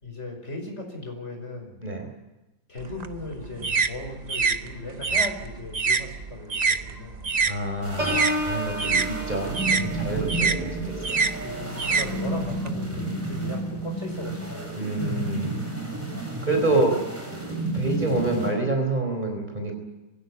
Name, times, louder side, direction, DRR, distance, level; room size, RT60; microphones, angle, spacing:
voice 1, 0.0-1.9 2.7-7.2 9.7-9.8 10.2-10.4 11.4-14.8, left 2 dB, 40° left, 3 dB, 5.7 m, -37 dB
sound 1, 2.8-7.6 7.9-12.7, right 5 dB, 45° right, 0.5 m, -26 dB
voice 2, 7.5-11.3 14.8-15.5 16.4-17.0 17.7-19.8, right 2 dB, 25° right, 3 dB, 4.6 m, -27 dB
sound 2, 7.8-18.5, right 2 dB, 5° right, 7.5 m, -32 dB
Piano, 8.0-13.6 14.1-14.4, equal, 75° right, 8.6 m, -34 dB
24.0 x 17.0 x 9.7 m, 1.0 s
omnidirectional pair, 1.9 m